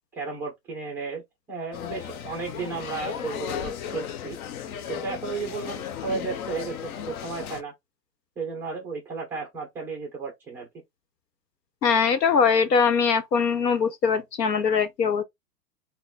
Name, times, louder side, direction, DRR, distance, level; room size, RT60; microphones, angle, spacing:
voice 1, 0.1-1.2 1.5-4.4 4.9-7.7 8.4-10.7, right 4 dB, 5° right, 0.3 m, -34 dB
sound 1, 1.7-7.6, left 9 dB, 60° left, 0.7 m, -35 dB
voice 2, 11.8-15.2, left 6 dB, 85° left, 1.0 m, -22 dB
3.9 x 2.1 x 3.9 m
hypercardioid pair, 115°, 48 cm